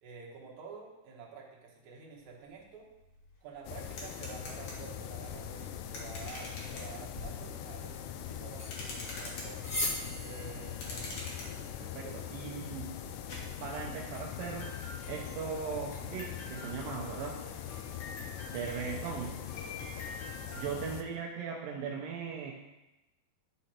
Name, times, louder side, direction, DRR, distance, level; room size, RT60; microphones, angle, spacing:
voice 1, 0.0-2.9 3.4-9.7 10.2-11.3 12.0-12.2, right 5 dB, 65° right, -2 dB, 2.6 m, -49 dB
sound 1, 2.5-2.6 2.9-21.0, left 2 dB, 55° left, 2.1 m, -47 dB
sound 2, 3.7-21.0, left 10 dB, 80° left, 2.0 m, -42 dB
sound 3, 7.1-13.1, left 1 dB, 30° left, 1.0 m, -42 dB
voice 2, 11.4-13.0 13.6-14.8 15.1-17.5 18.4-19.4 20.5-22.5, right 6 dB, 80° right, -1 dB, 2.5 m, -39 dB
11.5 x 4.2 x 4.3 m, 0.98 s
omnidirectional pair, 4.0 m